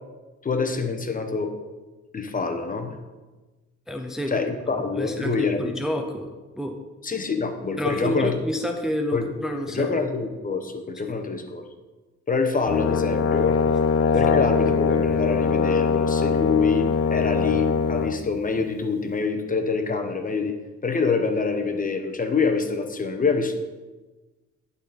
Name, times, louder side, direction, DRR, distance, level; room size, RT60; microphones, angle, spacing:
voice 1, 0.4-1.5 2.1-3.0 4.3-5.7 7.0-8.3 9.1-9.3 9.7-11.7 12.3-13.6 14.1-20.6 20.8-23.5, left 4 dB, 30° left, 6 dB, 0.9 m, -25 dB
voice 2, 3.9-4.3 4.7-6.8 7.8-9.9 11.1-11.2, equal, ahead, 4 dB, 0.6 m, -29 dB
Brass instrument, 12.7-18.2, left 5 dB, 50° left, 0.5 m, -22 dB
11.0 x 4.1 x 4.1 m, 1.2 s
cardioid pair, 90°, 30 cm